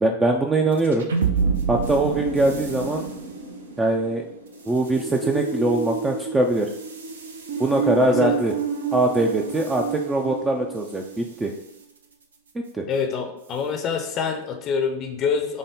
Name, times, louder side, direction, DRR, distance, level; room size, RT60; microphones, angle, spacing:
voice 1, 0.0-1.1 1.7-3.0 3.8-4.2 4.7-6.7 7.6-8.5 8.9-11.5 12.5-12.8, right 2 dB, 15° right, 2 dB, 0.4 m, -22 dB
sound 1, 0.7-11.2, right 5 dB, 70° right, 0.6 m, -29 dB
voice 2, 7.9-8.3 12.9-15.6, left 6 dB, 30° left, 5 dB, 0.6 m, -26 dB
6.3 x 2.1 x 3.6 m, 0.83 s
figure-of-eight pair, 90°, 0 cm